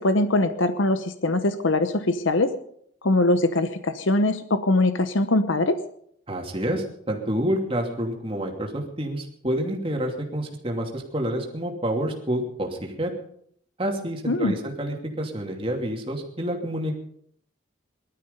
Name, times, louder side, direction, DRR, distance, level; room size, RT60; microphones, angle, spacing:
voice 1, 0.0-2.5 3.0-5.8 14.3-14.5, left 2 dB, 75° left, 10 dB, 1.0 m, -22 dB
voice 2, 6.3-13.1 13.8-17.0, equal, 25° right, 1 dB, 2.7 m, -28 dB
19.5 x 12.5 x 5.3 m, 0.67 s
head